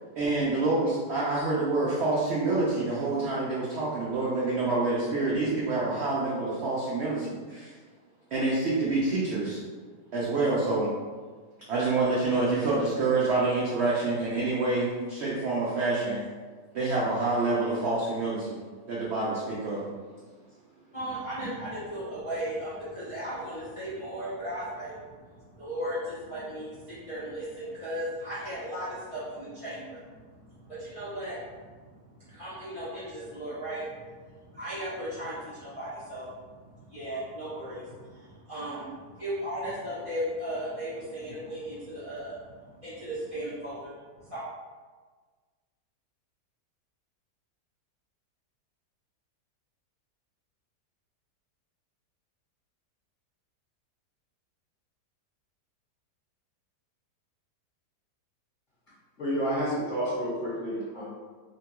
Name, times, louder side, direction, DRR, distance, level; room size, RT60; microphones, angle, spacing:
voice 1, 0.1-7.7 8.3-9.6 10.1-10.9 11.7-16.2 16.7-18.6 18.9-19.9, right 3 dB, 85° right, -7 dB, 0.6 m, -27 dB
voice 2, 20.9-24.9 25.6-30.0 30.7-31.4 32.3-33.9 34.5-36.3 36.9-37.9 38.5-38.9 39.2-42.4 42.8-43.9 44.3-44.4, equal, 65° left, -12 dB, 0.3 m, -36 dB
voice 3, 59.2-61.0, equal, 40° left, -9 dB, 0.8 m, -30 dB
2.8 x 2.2 x 2.9 m, 1.5 s
omnidirectional pair, 1.8 m